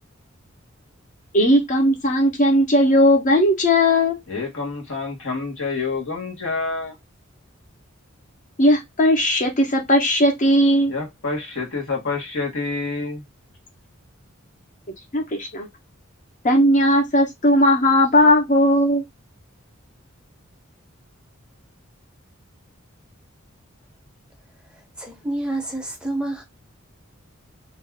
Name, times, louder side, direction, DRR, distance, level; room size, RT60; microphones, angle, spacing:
voice 1, 1.3-4.2 8.6-10.9 15.1-15.7 16.4-19.0, left 1 dB, 40° left, 0.8 m, -17 dB
voice 2, 4.3-6.9 10.9-13.2, left 3 dB, 70° left, 1.2 m, -28 dB
voice 3, 24.6-26.4, right 2 dB, 5° right, 0.7 m, -29 dB
2.6 x 2.3 x 3.4 m
head